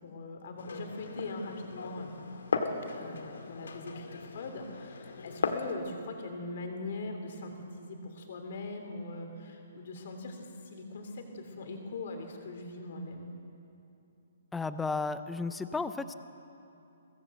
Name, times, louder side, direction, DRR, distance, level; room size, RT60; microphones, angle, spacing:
voice 1, 0.0-2.1 2.9-13.3, left 2 dB, 45° left, 4 dB, 3.1 m, -41 dB
Glass, 0.6-5.7, left 4 dB, 85° left, 1.8 m, -37 dB
voice 2, 14.5-16.1, left 4 dB, 5° left, 11 dB, 0.4 m, -33 dB
22.5 x 17.5 x 7.9 m, 2.8 s
hypercardioid pair, 180°, 0 cm